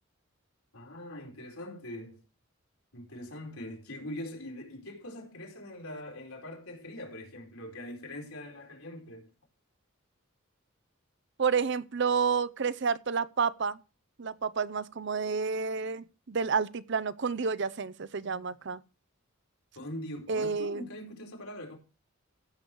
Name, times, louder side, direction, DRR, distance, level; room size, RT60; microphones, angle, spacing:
voice 1, 0.7-2.2 2.9-9.3 19.7-21.8, left 1 dB, 85° left, 4.5 m, -42 dB
voice 2, 11.4-13.8 14.2-18.8 20.3-20.8, right 5 dB, 55° right, 0.6 m, -30 dB
15.5 x 7.0 x 4.6 m
head